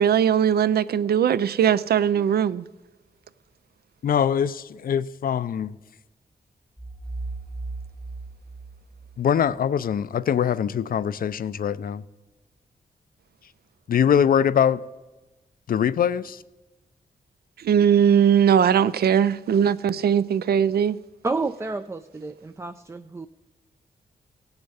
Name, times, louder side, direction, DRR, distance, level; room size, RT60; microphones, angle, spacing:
voice 1, 0.0-2.6 17.6-21.0, right 8 dB, 75° right, 0.4 m, -20 dB
voice 2, 4.0-5.8 9.2-12.0 13.9-14.8 15.7-16.4, left 8 dB, 60° left, 0.4 m, -23 dB
sound 1, 6.8-9.6, right 3 dB, ahead, 0.9 m, -36 dB
voice 3, 21.2-23.3, right 3 dB, 15° right, 0.3 m, -30 dB
17.0 x 7.8 x 5.6 m
wide cardioid pair, 105°, 16 cm